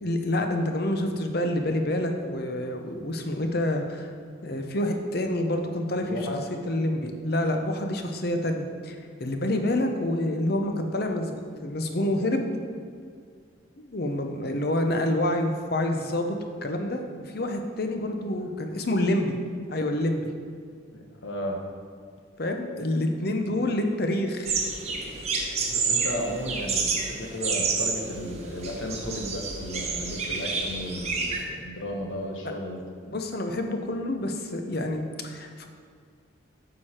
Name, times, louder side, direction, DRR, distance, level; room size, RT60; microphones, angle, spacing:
voice 1, 0.0-4.1 4.4-6.1 6.7-12.5 13.8-17.0 17.3-19.3 19.7-20.3 22.4-24.5 33.1-35.7, left 1 dB, 50° left, 4 dB, 0.8 m, -27 dB
voice 2, 6.0-6.4 20.9-21.6 25.7-32.9, equal, 80° left, 1 dB, 1.3 m, -34 dB
sound 1, 24.5-31.4, right 4 dB, 35° right, 0.9 m, -29 dB
9.2 x 6.5 x 4.4 m, 2.1 s
head